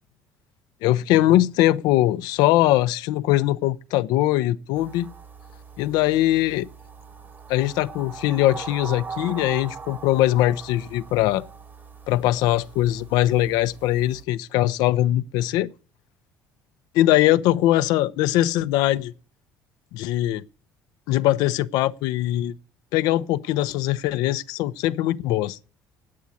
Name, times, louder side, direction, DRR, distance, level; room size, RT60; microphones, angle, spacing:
voice 1, 0.8-5.1 5.8-6.7 7.5-11.4 12.1-15.7 16.9-19.1 19.9-20.5 21.1-22.5 22.9-25.6, left 14 dB, 75° left, 0.6 m, -21 dB
sound 1, 4.7-14.2, right 5 dB, 30° right, 1.1 m, -41 dB
9.2 x 8.6 x 8.4 m
supercardioid pair, 80°, 7 cm